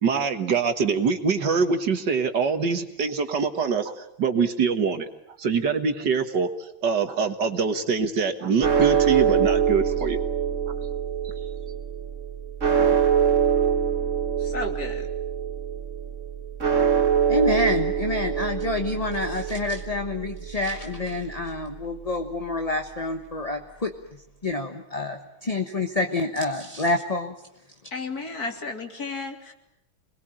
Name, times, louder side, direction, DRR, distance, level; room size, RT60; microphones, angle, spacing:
voice 1, 0.0-5.1 5.4-6.5 6.8-10.2, right 5 dB, 60° right, 8 dB, 2.1 m, -24 dB
sound 1, 8.6-22.9, right 7 dB, 40° right, 2.1 m, -25 dB
voice 2, 14.4-15.1 27.9-29.5, left 3 dB, 50° left, 4 dB, 3.3 m, -33 dB
voice 3, 17.3-23.9 24.4-27.3, left 2 dB, 25° left, 5 dB, 1.1 m, -27 dB
27.0 x 21.0 x 9.0 m, 0.82 s
omnidirectional pair, 2.2 m